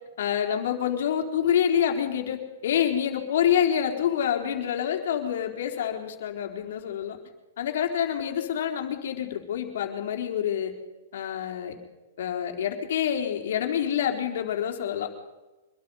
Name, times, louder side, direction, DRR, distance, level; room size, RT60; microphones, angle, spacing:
voice 1, 0.2-7.2 7.6-10.7 11.1-11.8 12.2-15.1, left 9 dB, 70° left, 3 dB, 4.0 m, -27 dB
25.5 x 22.0 x 5.6 m, 1.1 s
hypercardioid pair, 145°, 0 cm